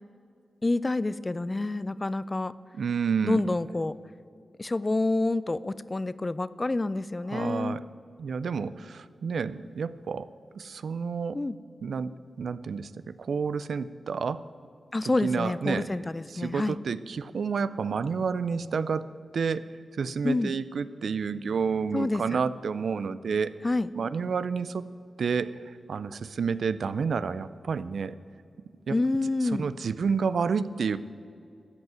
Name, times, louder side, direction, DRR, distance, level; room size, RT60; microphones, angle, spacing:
voice 1, 0.6-2.5 3.2-3.9 4.6-7.8 11.3-11.6 14.9-16.8 20.2-20.5 21.9-22.4 23.6-23.9 28.9-29.7, left 2 dB, 30° left, 17 dB, 0.4 m, -28 dB
voice 2, 2.7-3.4 7.3-7.8 8.2-10.3 10.6-11.4 11.8-12.9 13.2-14.4 15.2-15.9 16.3-19.6 20.0-23.5 24.0-24.8 25.2-25.5 25.9-28.2 28.9-29.0 29.6-31.0, right 5 dB, 80° right, 15 dB, 0.4 m, -29 dB
13.5 x 5.5 x 9.0 m, 2.3 s
cardioid pair, 65°, 0 cm